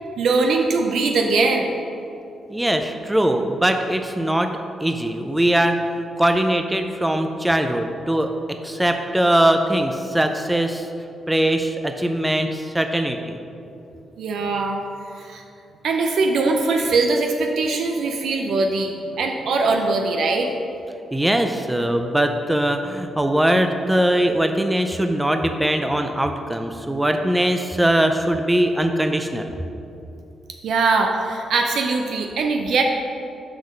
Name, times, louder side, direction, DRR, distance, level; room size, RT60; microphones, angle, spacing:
voice 1, 0.2-1.7 12.9-13.1 14.2-14.8 15.2-15.4 15.8-18.9 19.2-20.5 30.6-32.8, right 3 dB, 75° right, 3 dB, 0.6 m, -21 dB
voice 2, 2.5-5.9 6.2-10.9 11.3-13.4 21.1-29.5, right 1 dB, 10° right, 5 dB, 0.5 m, -21 dB
6.0 x 5.3 x 6.5 m, 2.7 s
cardioid pair, 75°, 0 cm